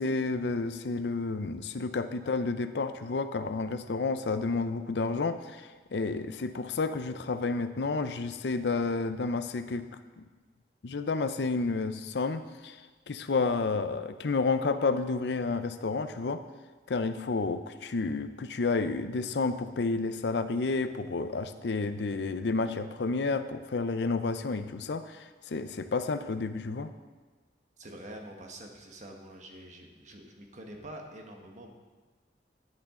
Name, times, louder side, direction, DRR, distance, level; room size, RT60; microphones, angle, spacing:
voice 1, 0.0-9.9 10.2-10.3 10.8-12.8 13.1-16.4 16.9-26.9, left 3 dB, 75° left, 10 dB, 0.6 m, -30 dB
voice 2, 27.8-31.7, right 1 dB, 45° right, 2 dB, 1.3 m, -46 dB
10.5 x 10.0 x 3.7 m, 1.3 s
head